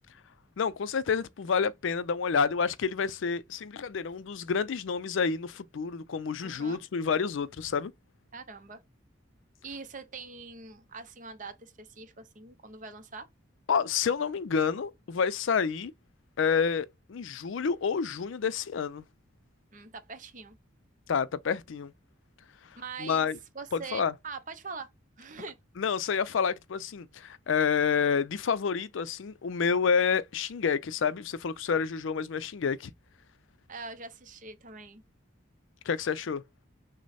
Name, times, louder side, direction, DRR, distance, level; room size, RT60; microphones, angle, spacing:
voice 1, 0.6-7.9 13.7-15.9 16.4-19.0 21.1-21.9 23.0-23.4 23.7-24.1 25.8-32.9 35.9-36.4, left 6 dB, 70° left, 0.4 m, -29 dB
voice 2, 6.4-6.8 8.3-8.8 9.6-13.3 19.7-20.6 22.8-23.3 23.5-24.9 25.2-25.6 33.7-35.0, right 4 dB, 40° right, 0.7 m, -43 dB
6.1 x 2.1 x 4.1 m
head